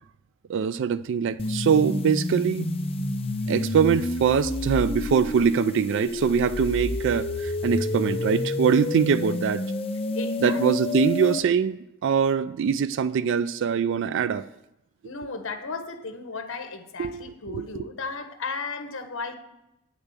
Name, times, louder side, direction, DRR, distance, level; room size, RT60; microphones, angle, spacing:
voice 1, 0.5-2.7 3.5-9.6 10.4-14.5 17.0-17.7, right 7 dB, 55° right, 0.3 m, -23 dB
sound 1, 1.4-11.4, left 2 dB, 25° left, 0.6 m, -29 dB
voice 2, 10.1-10.9 15.0-19.3, left 4 dB, 60° left, 1.3 m, -35 dB
9.3 x 7.0 x 8.1 m
head